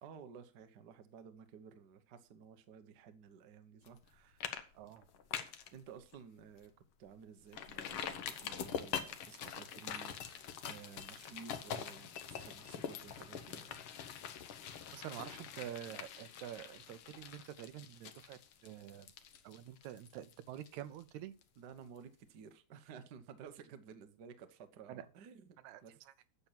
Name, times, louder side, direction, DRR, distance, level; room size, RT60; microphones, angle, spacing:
voice 1, 0.0-4.5 5.7-13.8 21.6-25.6 25.8-26.0, right 7 dB, 60° right, 1.0 m, -54 dB
sound 1, 3.9-4.1 4.4-4.6 4.9-5.7 6.1-6.2 6.6-6.7 7.5-21.1 21.4-21.5, left 8 dB, 65° left, 1.4 m, -44 dB
voice 2, 4.8-5.1 14.9-19.1 19.4-21.3 24.9-25.0 25.6-25.8, right 11 dB, 80° right, 2.1 m, -47 dB
9.0 x 6.9 x 7.3 m
omnidirectional pair, 3.3 m